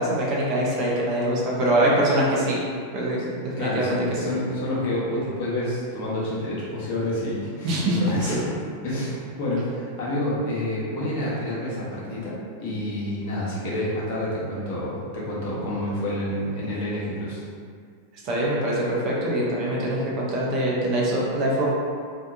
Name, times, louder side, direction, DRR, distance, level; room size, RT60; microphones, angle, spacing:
voice 1, 0.0-2.7 2.9-3.2 3.6-4.0 7.6-8.4 18.2-21.7, right 1 dB, 40° right, -5 dB, 0.6 m, -23 dB
voice 2, 3.2-8.5 8.8-17.4, left 1 dB, 45° left, -7 dB, 0.8 m, -29 dB
2.7 x 2.2 x 2.3 m, 2.1 s
figure-of-eight pair, 90°, 0 cm